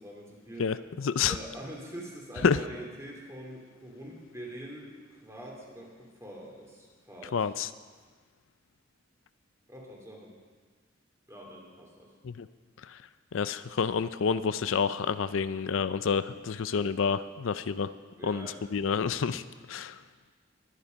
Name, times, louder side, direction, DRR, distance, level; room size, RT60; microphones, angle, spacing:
voice 1, 0.0-0.7 1.3-7.4 9.7-10.3 11.3-12.1 18.2-18.8, right 1 dB, 15° right, -2 dB, 2.8 m, -44 dB
voice 2, 0.6-1.4 2.4-2.6 7.3-7.7 12.2-12.5 12.9-13.0 13.3-17.9 18.2-19.4 19.7-20.0, left 6 dB, 75° left, 13 dB, 0.5 m, -29 dB
22.0 x 10.0 x 5.2 m, 1.5 s
head